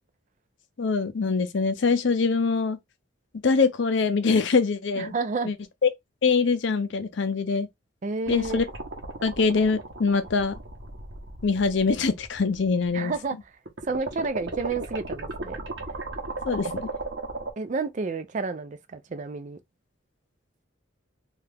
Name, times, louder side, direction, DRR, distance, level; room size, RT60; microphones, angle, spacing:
voice 1, 0.8-2.8 3.4-5.1 5.4-5.5 5.8-5.9 6.2-7.7 8.3-8.6 9.2-10.6 11.4-13.1 16.5-16.9, left 4 dB, 60° left, 0.5 m, -23 dB
voice 2, 5.0-5.5 8.0-8.6 12.9-13.4 13.8-15.6 17.6-19.6, right 4 dB, 35° right, 0.4 m, -30 dB
sound 1, 8.3-13.2 13.7-17.5, right 2 dB, 55° right, 0.9 m, -36 dB
2.7 x 2.4 x 3.4 m
head